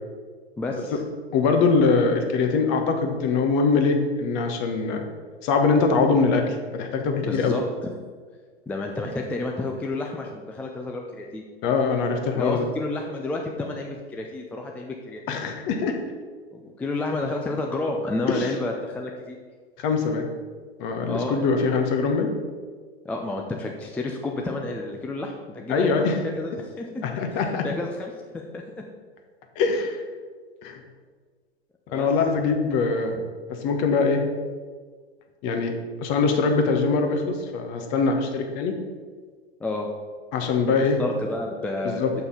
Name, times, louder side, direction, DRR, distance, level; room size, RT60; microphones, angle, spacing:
voice 1, 0.6-0.9 7.2-7.9 8.7-11.4 12.3-15.4 16.5-19.4 21.0-21.4 21.7-21.8 23.0-28.9 31.9-32.1 39.6-39.9 40.6-42.2, left 2 dB, 5° left, 1 dB, 0.4 m, -31 dB
voice 2, 1.3-5.0 5.4-7.6 11.6-12.7 15.3-16.0 18.3-18.5 19.8-20.3 20.8-22.3 25.7-26.2 27.0-27.6 29.6-30.0 30.6-30.8 31.9-33.1 33.5-34.2 35.4-35.7 36.0-38.8 40.3-41.0 41.8-42.1, left 4 dB, 40° left, 5 dB, 1.2 m, -23 dB
6.9 x 5.5 x 5.5 m, 1.5 s
figure-of-eight pair, 100°, 31 cm